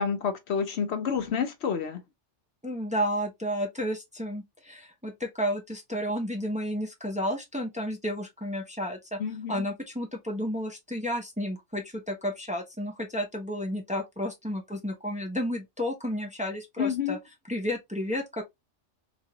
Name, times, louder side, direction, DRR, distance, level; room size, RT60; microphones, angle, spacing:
voice 1, 0.0-2.0 9.2-9.7 16.8-17.2, left 6 dB, 65° left, 0.9 m, -29 dB
voice 2, 2.6-9.2 9.5-17.2 17.5-18.4, equal, 5° right, 0.9 m, -32 dB
3.6 x 3.1 x 2.8 m
omnidirectional pair, 1.2 m